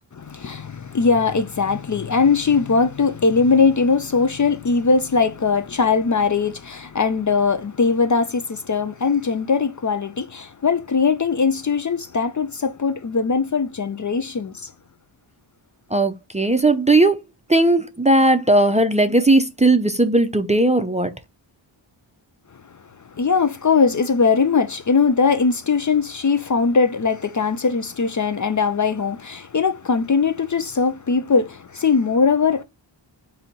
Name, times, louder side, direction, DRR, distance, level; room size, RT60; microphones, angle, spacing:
voice 1, 0.1-14.7 23.2-32.6, left 5 dB, 40° left, 0.5 m, -20 dB
voice 2, 15.9-17.2 17.5-21.1, right 2 dB, 15° right, 0.5 m, -17 dB
4.0 x 2.8 x 4.2 m
wide cardioid pair, 60°, 47 cm